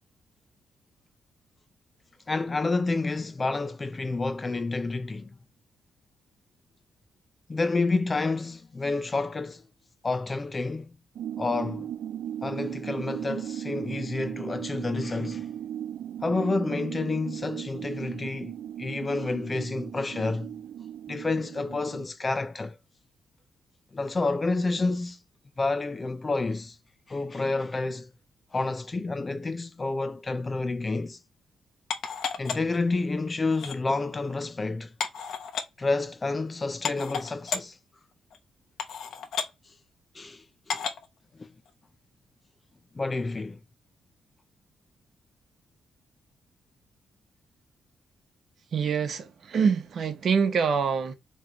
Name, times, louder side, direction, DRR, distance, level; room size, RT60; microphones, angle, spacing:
voice 1, 2.3-5.4 7.5-9.6 10.0-10.9 11.4-11.9 12.4-15.5 16.2-20.5 21.1-22.8 23.9-25.2 25.6-26.8 27.1-28.1 28.5-31.2 32.4-34.9 35.8-37.8 40.1-40.8 41.4-41.5 42.9-43.6, left 3 dB, 20° left, 0.3 m, -29 dB
sound 1, 11.1-22.0, right 10 dB, 75° right, 0.3 m, -37 dB
sound 2, 31.9-32.8 33.5-33.8 35.0-35.6 36.4-36.5 36.8-37.6 38.3-38.4 38.8-39.5 40.7-41.1 41.7-41.8, left 6 dB, 75° left, 1.0 m, -32 dB
voice 2, 48.7-51.1, right 6 dB, 50° right, 0.9 m, -25 dB
5.1 x 3.2 x 2.9 m
wide cardioid pair, 155°, 0 cm